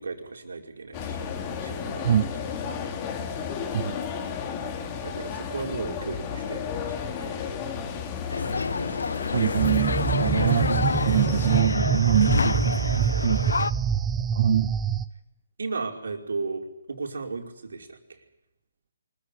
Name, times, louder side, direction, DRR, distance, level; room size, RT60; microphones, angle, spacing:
voice 1, 0.0-2.2 5.0-7.6 15.6-18.2, right 4 dB, 75° right, 2 dB, 5.1 m, -35 dB
sound 1, 0.9-11.6, left 7 dB, 30° left, 4.2 m, -33 dB
sound 2, 8.3-13.7, left 4 dB, 80° left, 0.8 m, -28 dB
voice 2, 9.3-13.6 14.3-14.7, right 9 dB, 50° right, 12 dB, 0.9 m, -24 dB
sound 3, 9.6-15.1, right 8 dB, 15° right, 1.0 m, -26 dB
24.5 x 15.5 x 9.9 m, 0.85 s
hypercardioid pair, 145°, 0 cm